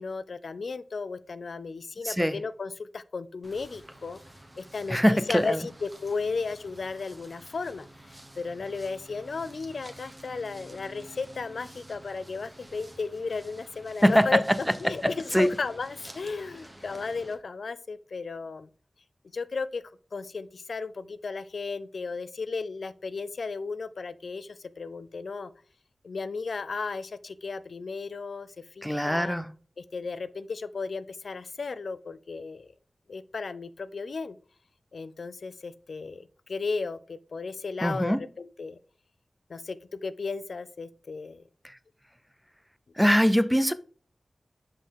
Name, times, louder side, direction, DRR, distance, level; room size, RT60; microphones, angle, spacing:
voice 1, 0.0-4.2 4.6-14.4 14.8-18.7 19.3-19.8 20.1-25.5 26.0-29.4 29.8-32.7 33.1-34.4 34.9-38.8 39.5-41.4, left 4 dB, 80° left, 0.3 m, -35 dB
voice 2, 2.0-2.3 4.9-5.6 14.0-14.4 15.3-15.5 28.8-29.5 37.8-38.2 41.6-41.7 43.0-43.7, equal, ahead, 0.5 m, -22 dB
sound 1, 3.4-17.4, right 1 dB, 20° right, 1.1 m, -50 dB
5.6 x 5.2 x 3.4 m
wide cardioid pair, 70°, 0 cm